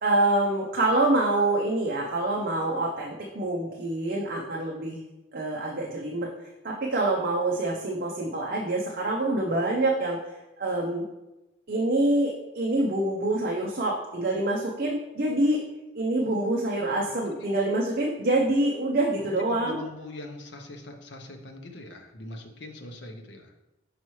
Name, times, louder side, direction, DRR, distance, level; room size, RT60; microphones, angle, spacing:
voice 1, 0.0-5.0 5.3-6.3 6.6-10.2 10.6-11.0 11.7-15.6 15.9-19.8, right 2 dB, 45° right, -1 dB, 0.6 m, -26 dB
voice 2, 16.2-16.5 16.9-17.5 19.5-23.5, left 2 dB, 60° left, 3 dB, 0.8 m, -43 dB
5.8 x 5.3 x 3.1 m, 1.0 s
head